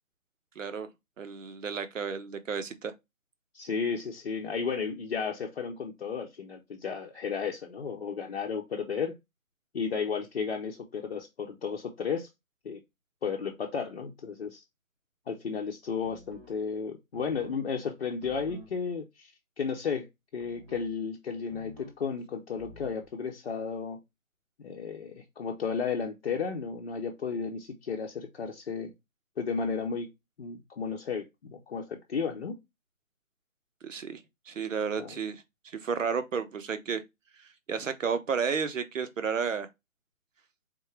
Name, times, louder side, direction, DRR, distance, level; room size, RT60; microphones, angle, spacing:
voice 1, 0.6-0.9 1.2-2.9 33.8-37.0 37.7-39.7, right 6 dB, 65° right, 0.9 m, -32 dB
voice 2, 3.5-9.1 9.7-12.3 12.6-12.8 13.2-14.6 15.3-19.3 19.6-20.1 20.3-24.0 24.6-28.9 29.4-30.1 30.4-32.6 35.0-35.2, left 5 dB, 45° left, 0.8 m, -33 dB
sound 1, 16.0-16.5 17.1-17.6 18.2-18.7 20.4-20.9 21.5-22.0 22.6-23.1, equal, 25° right, 0.7 m, -49 dB
3.7 x 3.6 x 3.2 m
hypercardioid pair, 155°, 41 cm